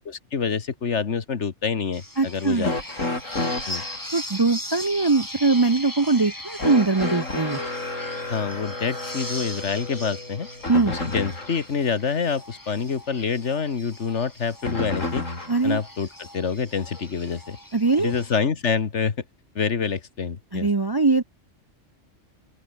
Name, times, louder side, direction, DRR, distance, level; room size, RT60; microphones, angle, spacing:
voice 1, 0.1-2.7 3.7-3.8 8.3-10.5 10.9-15.3 15.6-17.6 18.0-19.2 19.5-20.7, left 6 dB, 65° left, 1.8 m, -27 dB
sound 1, 1.9-18.4, left 1 dB, 15° left, 4.1 m, -39 dB
voice 2, 2.2-2.7 4.1-7.6 10.7-10.9 15.5-15.8 17.7-18.1 20.5-21.2, right 3 dB, 25° right, 0.5 m, -21 dB
sound 2, 2.6-4.1 6.6-11.7 14.6-15.7 16.9-17.0 18.1-18.2, left 2 dB, 80° left, 5.9 m, -31 dB
open air
omnidirectional pair, 1.3 m